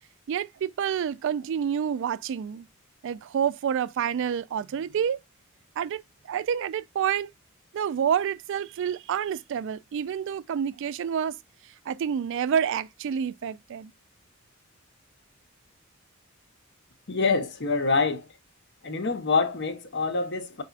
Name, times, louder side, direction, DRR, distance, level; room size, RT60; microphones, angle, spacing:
voice 1, 0.3-2.7 3.0-5.2 5.8-7.3 7.7-11.4 11.9-13.9, right 8 dB, 60° right, 0.3 m, -28 dB
voice 2, 17.1-18.3 18.8-20.6, left 4 dB, 55° left, 0.9 m, -26 dB
5.4 x 4.1 x 2.4 m
head